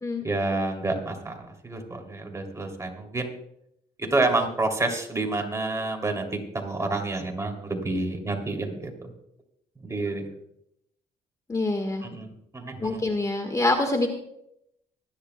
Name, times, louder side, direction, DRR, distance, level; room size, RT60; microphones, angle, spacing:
voice 1, 0.2-3.3 4.0-9.1 9.8-10.3 12.0-13.0, right 2 dB, 20° right, 3 dB, 2.8 m, -29 dB
voice 2, 11.5-12.0 12.8-14.1, left 2 dB, 20° left, 5 dB, 1.5 m, -25 dB
24.5 x 10.5 x 2.2 m, 0.78 s
supercardioid pair, 80°, 15 cm